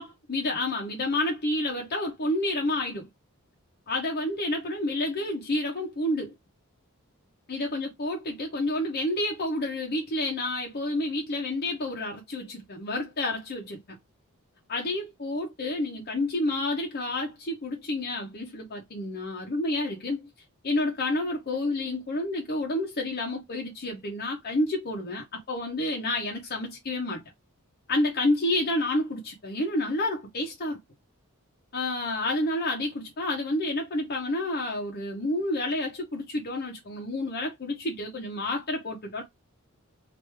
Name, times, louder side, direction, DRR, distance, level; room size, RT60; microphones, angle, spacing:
voice 1, 0.0-3.1 3.9-6.3 7.5-14.0 14.7-20.3 20.6-27.2 27.9-30.8 31.7-39.2, left 1 dB, 45° left, 0.8 m, -29 dB
3.1 x 2.5 x 3.3 m
head